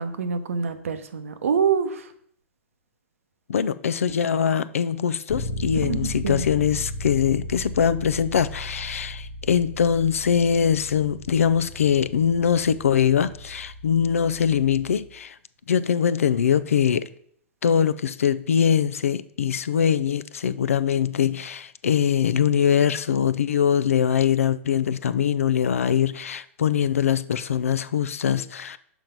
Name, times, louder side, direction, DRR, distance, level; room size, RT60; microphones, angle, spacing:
voice 1, 0.0-2.1 5.8-6.4, right 6 dB, 85° right, 0.8 m, -26 dB
voice 2, 3.5-15.4 15.7-17.0 17.6-28.8, left 8 dB, 90° left, 0.4 m, -22 dB
Bass guitar, 5.3-15.1, left 1 dB, 55° left, 0.9 m, -36 dB
6.0 x 4.5 x 5.1 m
hypercardioid pair, 120°, 7 cm